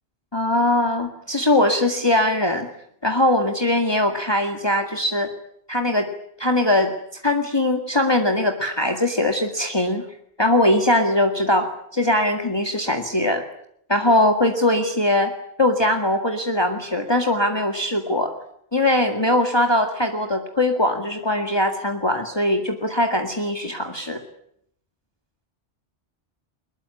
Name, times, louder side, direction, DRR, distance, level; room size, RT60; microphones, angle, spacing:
voice 1, 0.3-2.7 3.0-5.3 5.7-6.1 6.4-6.9 7.2-10.0 10.4-13.4 13.9-15.3 15.6-18.3 18.7-24.2, left 1 dB, 25° left, 4 dB, 2.0 m, -21 dB
22.5 x 20.5 x 9.8 m, 0.72 s
omnidirectional pair, 1.1 m